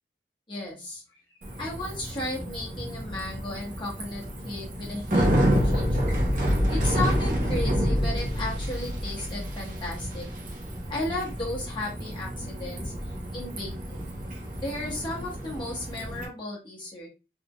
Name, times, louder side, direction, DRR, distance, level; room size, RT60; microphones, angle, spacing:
voice 1, 0.5-6.2 6.7-10.3 10.9-14.1 14.6-17.1, left 1 dB, 25° left, -4 dB, 1.4 m, -35 dB
Bicycle, 1.4-16.2, equal, 45° right, 0.9 m, -28 dB
3.7 x 3.6 x 2.4 m, 0.29 s
head